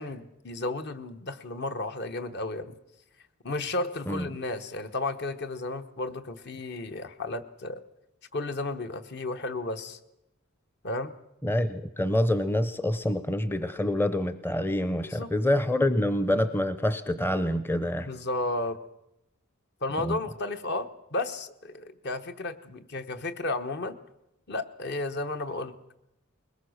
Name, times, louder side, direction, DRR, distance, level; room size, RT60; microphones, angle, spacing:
voice 1, 0.0-2.7 3.4-7.8 8.3-10.0 10.8-11.1 15.0-15.3 18.0-18.8 19.8-24.0 24.5-25.7, left 2 dB, 50° left, 9 dB, 1.1 m, -33 dB
voice 2, 11.4-18.1 20.0-20.2, left 1 dB, 10° left, 12 dB, 0.6 m, -26 dB
21.5 x 20.0 x 6.5 m, 0.88 s
head